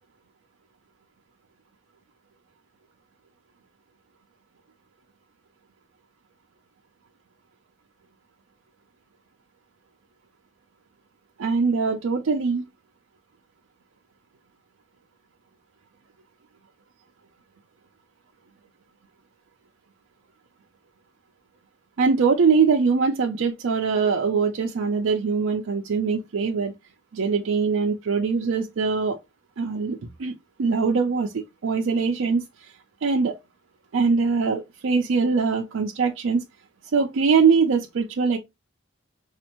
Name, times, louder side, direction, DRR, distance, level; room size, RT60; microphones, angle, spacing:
voice 1, 11.4-12.6 22.0-26.7 27.1-29.2 29.6-30.3 30.6-32.7 33.0-33.4 33.9-36.4 36.9-38.4, right 5 dB, 80° right, 0.4 m, -22 dB
4.2 x 2.4 x 2.9 m
head